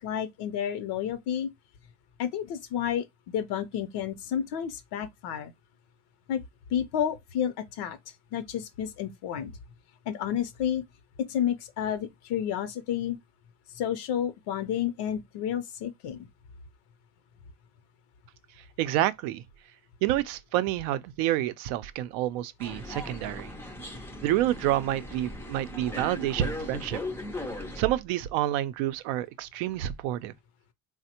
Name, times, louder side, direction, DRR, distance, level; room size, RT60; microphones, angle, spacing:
voice 1, 0.0-1.5 2.2-5.5 6.3-6.4 6.7-8.0 8.3-9.5 10.1-10.8 11.3-13.2 13.7-16.2, left 9 dB, 70° left, 0.6 m, -30 dB
voice 2, 18.8-19.4 20.0-23.5 24.2-27.0 27.8-30.3, right 13 dB, 90° right, 0.5 m, -28 dB
sound 1, 22.6-27.8, left 1 dB, 5° left, 0.3 m, -38 dB
3.3 x 2.1 x 2.8 m
cardioid pair, 130°, 42 cm